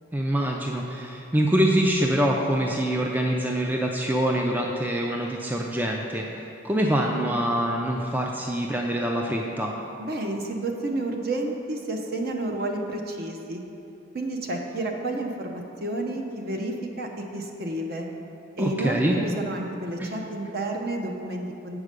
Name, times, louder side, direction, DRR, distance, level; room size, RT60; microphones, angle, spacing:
voice 1, 0.1-9.7 18.6-19.2 20.0-20.1, right 1 dB, 10° right, 0 dB, 0.4 m, -25 dB
voice 2, 10.1-13.6 14.1-18.1 18.6-21.8, right 2 dB, 50° right, 2 dB, 0.7 m, -30 dB
7.4 x 4.9 x 6.5 m, 2.9 s
head